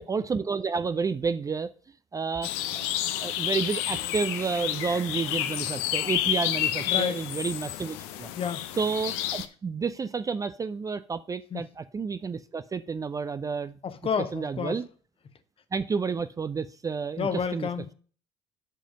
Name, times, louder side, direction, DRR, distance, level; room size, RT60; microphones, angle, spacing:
voice 1, 0.0-1.7 2.1-2.5 2.7-2.8 3.2-8.3 8.8-13.8 14.3-14.8 15.7-17.7, right 5 dB, 20° right, 0.4 m, -30 dB
sound 1, 2.4-9.5, left 12 dB, 65° left, 0.7 m, -30 dB
voice 2, 6.9-7.3 8.3-8.6 11.5-11.7 13.8-14.8 17.2-17.9, left 7 dB, 35° left, 1.1 m, -30 dB
7.6 x 5.0 x 5.1 m
hypercardioid pair, 60°, 16 cm